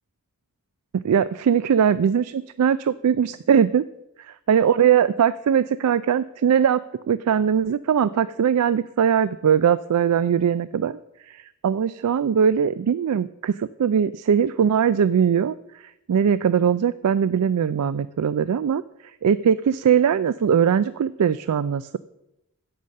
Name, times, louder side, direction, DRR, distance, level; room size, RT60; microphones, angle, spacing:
voice 1, 1.0-3.8 4.2-11.0 11.3-22.0, right 8 dB, 90° right, 16 dB, 0.4 m, -21 dB
16.0 x 5.6 x 6.4 m, 0.89 s
head